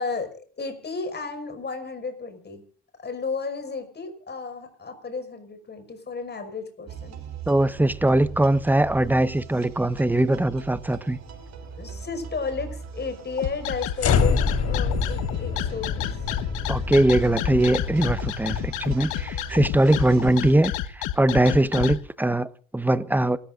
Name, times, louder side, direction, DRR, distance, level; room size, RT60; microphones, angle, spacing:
voice 1, 0.0-2.6 3.0-7.2 11.8-14.4 14.7-16.2, left 4 dB, 35° left, 5.9 m, -33 dB
sound 1, 6.9-20.6, right 7 dB, 60° right, 5.0 m, -40 dB
voice 2, 7.5-11.2 16.7-23.4, right 1 dB, 5° right, 1.3 m, -21 dB
sound 2, 13.4-22.0, left 13 dB, 75° left, 1.3 m, -30 dB
sound 3, 14.0-20.3, left 6 dB, 55° left, 4.2 m, -27 dB
28.0 x 14.5 x 2.6 m
supercardioid pair, 80°, 31 cm